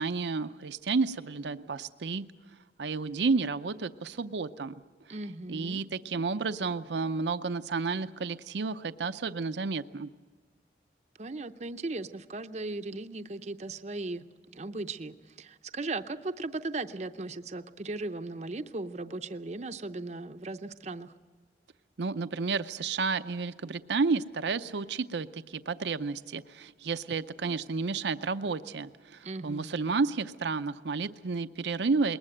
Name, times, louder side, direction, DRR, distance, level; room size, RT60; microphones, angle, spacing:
voice 1, 0.0-2.3 2.8-4.7 5.5-10.1 22.0-32.2, right 4 dB, 80° right, 11 dB, 0.6 m, -31 dB
voice 2, 5.1-5.8 11.2-14.2 14.5-21.1 29.2-29.7, right 2 dB, 40° right, 9 dB, 0.6 m, -37 dB
21.0 x 19.5 x 7.9 m, 1.4 s
head